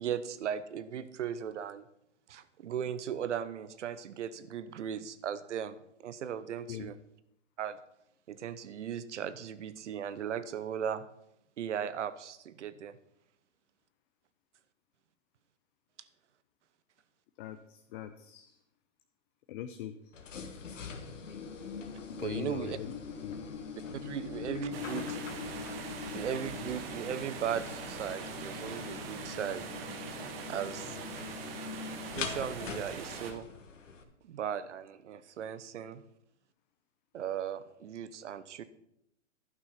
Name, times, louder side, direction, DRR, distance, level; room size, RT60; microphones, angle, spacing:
voice 1, 0.0-1.9 2.3-7.0 7.6-7.8 8.3-11.1 11.6-13.0 22.2-22.8 24.0-25.2 26.1-29.7 30.2-31.0 32.1-33.5 34.2-36.0 37.1-38.6, right 8 dB, 70° right, 14 dB, 0.9 m, -37 dB
voice 2, 17.4-18.6 19.5-20.1 22.2-23.4, left 11 dB, 45° left, 8 dB, 0.7 m, -41 dB
sound 1, 20.1-34.0, left 5 dB, 80° left, 1.5 m, -42 dB
sound 2, 24.7-33.3, right 7 dB, 50° right, 1.6 m, -43 dB
11.5 x 6.2 x 5.8 m, 0.79 s
hypercardioid pair, 115°, 37 cm